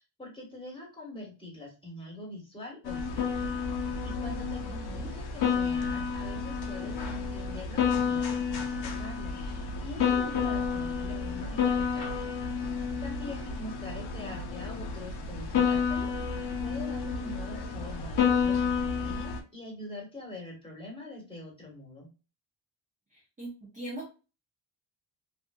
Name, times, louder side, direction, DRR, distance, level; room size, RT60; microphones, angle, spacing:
voice 1, 0.0-12.8 13.0-22.1, left 2 dB, 10° left, -2 dB, 1.4 m, -44 dB
sound 1, 2.8-19.4, left 6 dB, 55° left, 0.6 m, -30 dB
voice 2, 14.2-14.7 23.1-24.1, right 1 dB, 15° right, -2 dB, 0.6 m, -42 dB
2.6 x 2.4 x 2.3 m, 0.33 s
cardioid pair, 90°, 48 cm